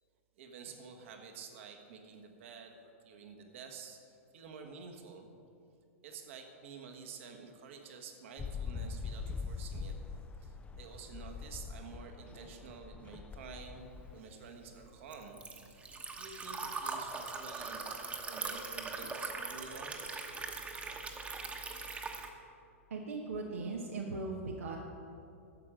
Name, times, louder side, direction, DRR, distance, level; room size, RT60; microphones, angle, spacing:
voice 1, 0.4-2.7 3.0-5.3 6.0-10.0 10.4-15.4 15.7-20.0, right 5 dB, 60° right, 4 dB, 1.4 m, -50 dB
sound 1, 8.4-14.2, left 5 dB, 15° left, 0.5 m, -43 dB
Liquid, 14.0-22.3, right 4 dB, 15° right, 1.1 m, -41 dB
voice 2, 22.9-24.8, right 3 dB, 75° right, -1 dB, 1.0 m, -38 dB
12.0 x 7.3 x 5.0 m, 2.7 s
hypercardioid pair, 105°, 8 cm